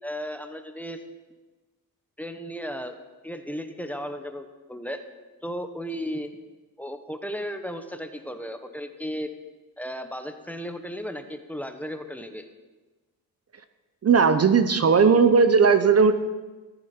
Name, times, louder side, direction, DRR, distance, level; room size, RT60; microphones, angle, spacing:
voice 1, 0.0-1.0 2.2-3.0 3.2-5.0 5.4-6.3 6.8-9.3 9.8-12.5, equal, 5° left, 7 dB, 1.0 m, -35 dB
voice 2, 14.0-16.2, right 5 dB, 40° right, 10 dB, 0.8 m, -17 dB
14.5 x 12.5 x 4.4 m, 1.2 s
cardioid pair, 100°, 38 cm